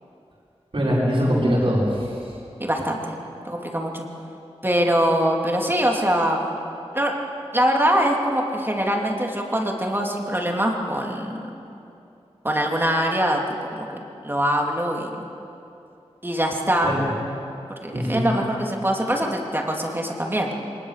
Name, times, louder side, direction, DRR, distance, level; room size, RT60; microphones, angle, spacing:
voice 1, 0.7-2.1 16.8-17.1 17.9-18.3, equal, 55° right, -6 dB, 5.9 m, -22 dB
voice 2, 2.6-3.2 3.4-4.0 4.6-6.6 6.9-7.1 7.5-11.4 12.4-13.4 13.7-15.1 16.2-17.0 17.8-20.5, equal, 20° right, 0 dB, 2.8 m, -23 dB
23.0 x 20.5 x 6.6 m, 2.7 s
wide cardioid pair, 80°, 11 cm